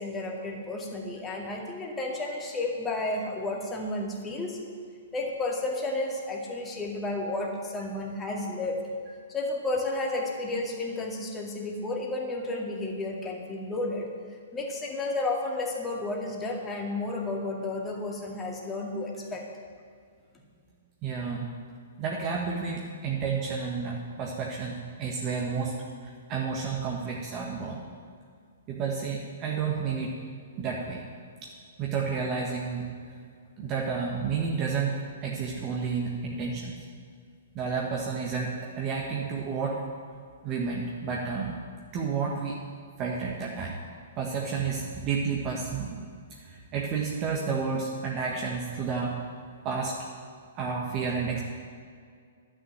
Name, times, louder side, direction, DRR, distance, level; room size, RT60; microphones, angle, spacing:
voice 1, 0.0-4.6 5.1-8.8 9.3-14.1 14.5-19.4, left 2 dB, 15° left, -1 dB, 2.1 m, -32 dB
voice 2, 21.0-21.5 22.0-25.8 26.0-27.8 28.7-30.1 30.6-31.0 31.4-31.5 31.8-32.9 33.6-36.7 37.5-39.8 40.4-41.5 41.9-42.6 43.0-43.8 44.2-49.2 49.6-50.0 50.6-51.4, right 5 dB, 30° right, -2 dB, 1.4 m, -31 dB
11.0 x 6.4 x 8.9 m, 2.1 s
figure-of-eight pair, 120°, 0 cm